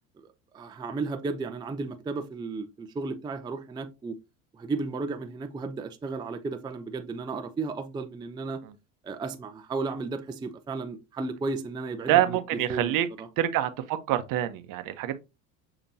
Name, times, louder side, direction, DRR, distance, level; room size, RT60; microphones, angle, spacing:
voice 1, 0.5-4.2 4.5-8.6 9.0-13.3, right 3 dB, 10° right, 0.4 m, -34 dB
voice 2, 12.1-13.1 13.4-15.2, right 12 dB, 50° right, 0.7 m, -26 dB
6.8 x 2.9 x 2.6 m
hypercardioid pair, 80°, 42 cm